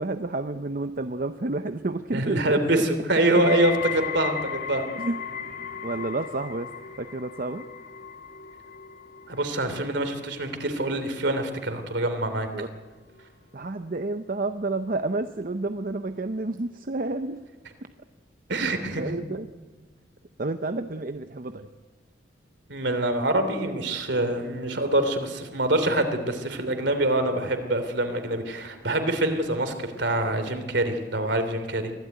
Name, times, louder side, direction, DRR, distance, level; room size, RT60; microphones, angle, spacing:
voice 1, 0.0-2.6 4.9-5.3 5.8-6.7 7.0-7.6 12.5-12.7 13.5-17.4 18.6-18.7 19.0-19.5 20.4-21.7, right 2 dB, 45° right, 8 dB, 0.7 m, -30 dB
voice 2, 2.1-4.9 9.3-12.5 18.5-19.0 22.7-31.9, right 1 dB, 65° right, 8 dB, 3.0 m, -25 dB
sound 1, 3.3-14.4 14.7-15.2 16.0-16.1, left 7 dB, 50° left, 1.8 m, -38 dB
24.5 x 16.5 x 9.3 m, 1.3 s
head